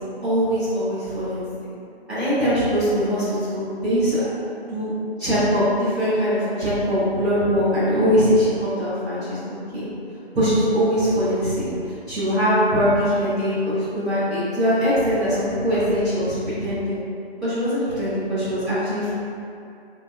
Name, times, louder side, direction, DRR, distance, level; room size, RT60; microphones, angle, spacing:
voice 1, 0.2-1.4 2.1-4.3 4.7-4.9 5.2-9.8 10.3-17.0 17.4-19.1, equal, ahead, -22 dB, 0.4 m, -22 dB
3.2 x 2.0 x 2.3 m, 2.6 s
figure-of-eight pair, 150°, 32 cm